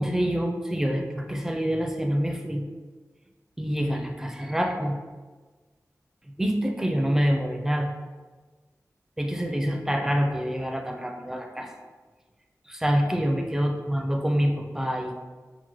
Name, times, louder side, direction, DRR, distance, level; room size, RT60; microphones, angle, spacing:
voice 1, 0.0-2.6 3.6-5.0 6.4-7.9 9.2-11.7 12.7-15.2, equal, 5° right, 3 dB, 0.4 m, -26 dB
5.8 x 2.1 x 3.0 m, 1.4 s
wide cardioid pair, 90°, 6 cm